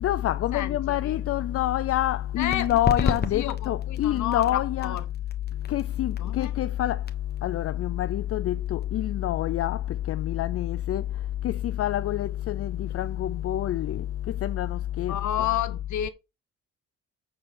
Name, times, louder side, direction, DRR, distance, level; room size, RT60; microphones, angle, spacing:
voice 1, 0.0-5.0 5.7-7.0 7.4-11.1 11.4-15.2, left 13 dB, 50° left, 0.4 m, -27 dB
voice 2, 0.5-1.2 2.4-5.0 6.2-6.5 15.1-16.1, left 11 dB, 70° left, 1.1 m, -31 dB
sound 1, 2.4-9.7, left 5 dB, 35° left, 1.3 m, -34 dB
7.5 x 4.5 x 5.4 m
cardioid pair, 90°, 30 cm